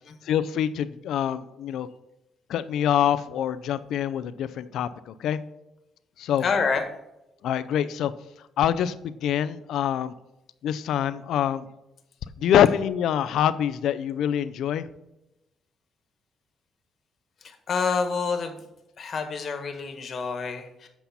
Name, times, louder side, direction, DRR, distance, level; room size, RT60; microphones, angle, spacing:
voice 1, 0.2-1.9 2.5-5.4 6.2-6.4 7.4-8.1 8.6-10.1 10.6-11.7 12.4-14.9, left 10 dB, 80° left, 13 dB, 0.5 m, -25 dB
voice 2, 6.4-6.8 17.4-18.6 19.0-20.9, left 5 dB, 50° left, 6 dB, 1.4 m, -28 dB
8.1 x 5.6 x 4.2 m, 0.89 s
cardioid pair, 90°, 0 cm